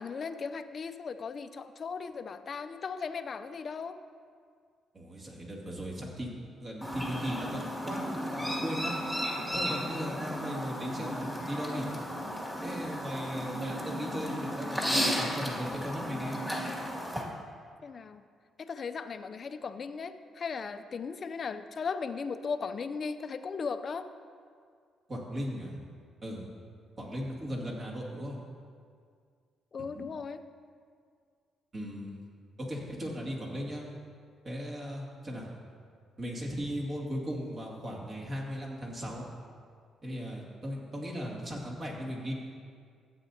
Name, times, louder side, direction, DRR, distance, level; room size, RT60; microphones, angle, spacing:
voice 1, 0.0-4.0 17.8-18.3 18.6-24.1 29.7-30.5, left 5 dB, 45° left, 10 dB, 0.5 m, -37 dB
voice 2, 4.9-6.3 6.6-8.9 9.5-11.9 12.6-16.4 25.1-25.7 26.2-26.4 27.0-28.4 29.9-30.1 31.7-32.2 32.6-33.9 34.4-35.5 36.2-39.3 40.0-42.3, equal, 40° right, -3 dB, 2.3 m, -37 dB
Chirp tweet, 6.8-17.2, equal, 10° right, 2.1 m, -34 dB
15.0 x 8.6 x 2.8 m, 2.1 s
cardioid pair, 90°, 0 cm